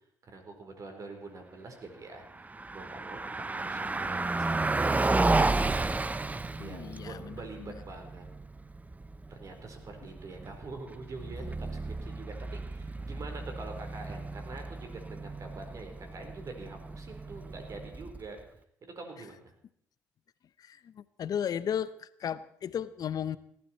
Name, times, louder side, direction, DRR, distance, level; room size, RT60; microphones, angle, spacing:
voice 1, 0.3-3.2 3.5-5.7 6.5-8.3 9.3-18.4 18.8-19.5, right 3 dB, 50° right, 4 dB, 4.1 m, -45 dB
Car passing by, 2.3-18.4, right 2 dB, 20° right, 0.8 m, -33 dB
voice 2, 6.6-7.8 20.6-23.4, left 9 dB, 60° left, 16 dB, 0.7 m, -35 dB
18.5 x 12.5 x 4.4 m, 0.69 s
supercardioid pair, 60°, 7 cm